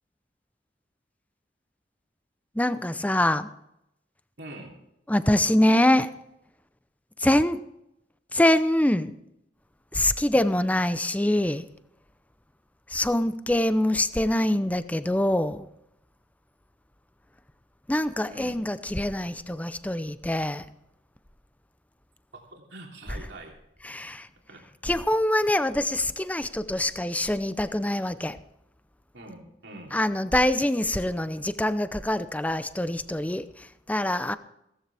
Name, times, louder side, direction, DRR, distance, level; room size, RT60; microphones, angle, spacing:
voice 1, 2.5-3.5 5.1-6.1 7.2-7.6 8.3-9.2 9.9-11.7 12.9-15.7 17.9-20.7 23.1-23.2 23.8-24.3 24.8-28.4 29.9-34.4, left 1 dB, 10° left, 12 dB, 0.7 m, -24 dB
voice 2, 4.4-4.8 18.3-18.6 22.3-23.6 24.5-24.6 29.1-29.9, right 2 dB, 85° right, 0 dB, 3.2 m, -44 dB
16.5 x 14.5 x 3.5 m, 0.82 s
head